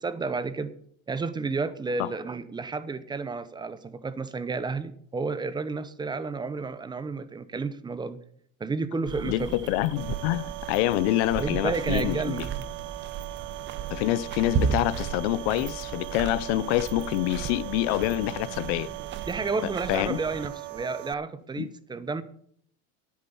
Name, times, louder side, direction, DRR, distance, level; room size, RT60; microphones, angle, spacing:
voice 1, 0.0-0.7 1.1-8.2 8.6-9.6 11.4-12.7 19.3-22.2, right 4 dB, 15° right, 0.7 m, -31 dB
sound 1, 9.1-20.5, right 7 dB, 35° right, 1.1 m, -35 dB
voice 2, 9.2-12.5 13.9-18.9 19.6-20.2 21.6-21.7, left 16 dB, 75° left, 0.7 m, -27 dB
sound 2, 10.0-21.1, right 27 dB, 60° right, 0.4 m, -40 dB
10.0 x 8.8 x 7.1 m
supercardioid pair, 140°, 32 cm